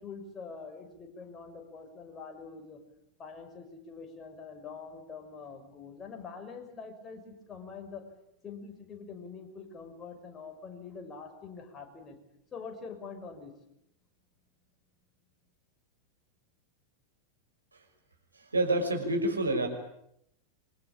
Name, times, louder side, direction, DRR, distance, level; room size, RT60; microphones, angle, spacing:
voice 1, 0.0-2.8 3.2-8.0 8.4-12.2 12.5-13.5, left 5 dB, 25° left, 5 dB, 6.0 m, -45 dB
voice 2, 18.3-19.7, right 2 dB, 80° right, 4 dB, 5.7 m, -28 dB
27.5 x 24.5 x 8.8 m, 0.77 s
figure-of-eight pair, 90°, 0 cm